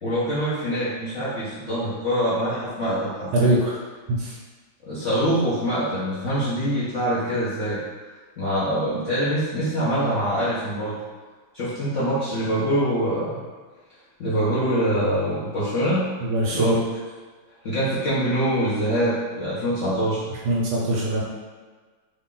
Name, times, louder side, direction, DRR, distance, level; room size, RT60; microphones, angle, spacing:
voice 1, 0.0-3.6 4.9-7.8 8.4-11.0 11.5-13.4 14.2-16.1 16.5-16.8 17.6-20.2, equal, 55° left, -11 dB, 0.8 m, -24 dB
voice 2, 3.3-3.8 4.1-4.3 16.2-16.8 20.4-21.2, right 1 dB, 70° right, -4 dB, 1.1 m, -22 dB
3.3 x 2.4 x 3.7 m, 1.4 s
omnidirectional pair, 2.2 m